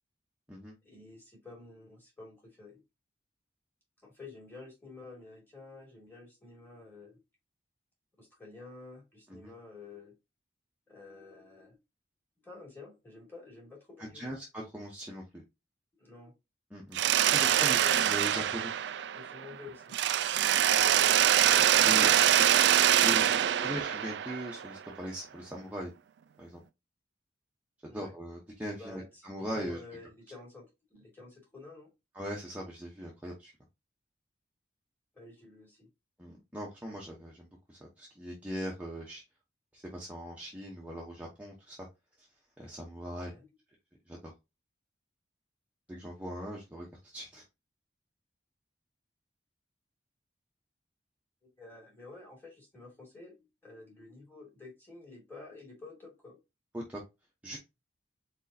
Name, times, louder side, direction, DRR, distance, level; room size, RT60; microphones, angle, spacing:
voice 1, 0.8-2.8 4.0-7.2 8.2-10.1 10.9-11.8 12.4-14.3 16.0-16.3 16.9-17.9 19.1-20.0 20.6-22.6 23.2-23.8 27.9-28.1 28.7-29.3 29.5-31.9 35.1-35.9 43.3-43.5 51.6-56.4, left 3 dB, 10° left, -2 dB, 2.6 m, -50 dB
voice 2, 14.0-15.4 16.7-17.0 17.3-18.7 21.8-22.1 22.3-22.4 23.0-25.9 26.4-26.6 27.8-29.8 32.1-33.5 36.2-39.2 39.7-41.8 42.6-43.4 44.1-44.2 45.9-47.4 56.7-57.0 57.4-57.6, equal, 10° right, -3 dB, 1.0 m, -40 dB
Mechanisms, 16.9-19.5 19.9-24.8, right 11 dB, 70° right, 0.3 m, -24 dB
4.5 x 4.3 x 2.7 m, 0.24 s
head